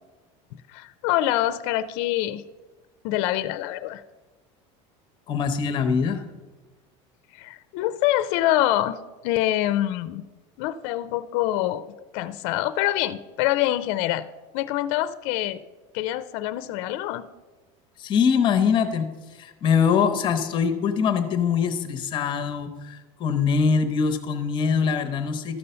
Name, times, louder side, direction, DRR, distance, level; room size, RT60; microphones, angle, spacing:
voice 1, 0.7-2.4 3.0-4.0 7.3-9.0 9.2-10.2 10.6-11.8 12.1-14.3 14.5-15.6 15.9-17.3, left 14 dB, 60° left, 13 dB, 0.4 m, -25 dB
voice 2, 5.3-6.2 18.0-25.6, left 6 dB, 30° left, 8 dB, 0.8 m, -23 dB
13.0 x 5.4 x 5.6 m, 1.2 s
cardioid pair, 170°, 15 cm